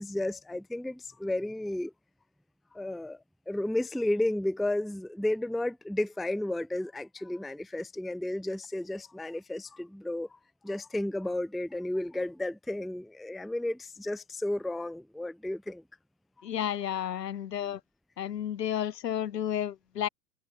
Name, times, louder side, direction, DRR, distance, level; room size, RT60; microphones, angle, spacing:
voice 1, 0.0-1.9 2.7-3.2 3.5-10.4 10.6-15.8, left 1 dB, ahead, 0.5 m, -32 dB
voice 2, 16.4-17.8 18.2-20.1, left 10 dB, 70° left, 6.4 m, -32 dB
hypercardioid pair, 110°, 50 cm